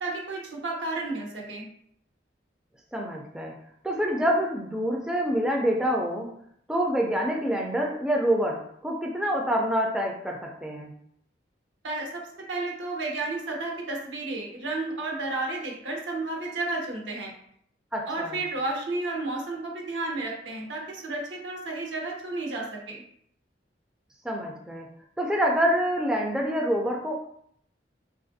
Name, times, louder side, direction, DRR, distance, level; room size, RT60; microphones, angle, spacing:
voice 1, 0.0-1.7 11.8-12.2 12.5-17.3 18.1-23.0, right 2 dB, 85° right, 0 dB, 0.8 m, -32 dB
voice 2, 2.9-3.5 3.8-6.3 6.7-10.9 17.9-18.4 24.2-24.9 25.2-27.1, equal, 5° right, -1 dB, 0.3 m, -26 dB
3.4 x 2.4 x 2.5 m, 0.68 s
head